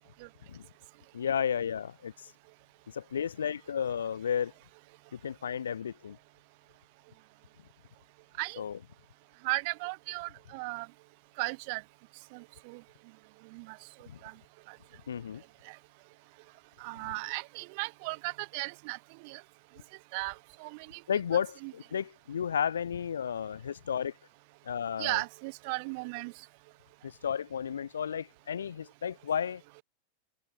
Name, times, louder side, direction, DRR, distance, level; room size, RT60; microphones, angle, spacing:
voice 1, 1.1-2.3 2.9-4.5 5.1-6.2 8.6-8.8 14.1-14.2 15.1-15.4 21.1-24.1 24.6-25.2 27.0-29.6, left 8 dB, 70° left, 1.1 m, -33 dB
voice 2, 9.4-10.9 11.4-11.8 12.3-12.8 13.4-13.8 14.2-14.4 14.7-14.8 15.6-15.8 16.8-19.4 20.1-21.0 21.6-21.7 25.0-26.3, right 30 dB, 45° right, 0.9 m, -36 dB
open air
figure-of-eight pair, 90°, 0 cm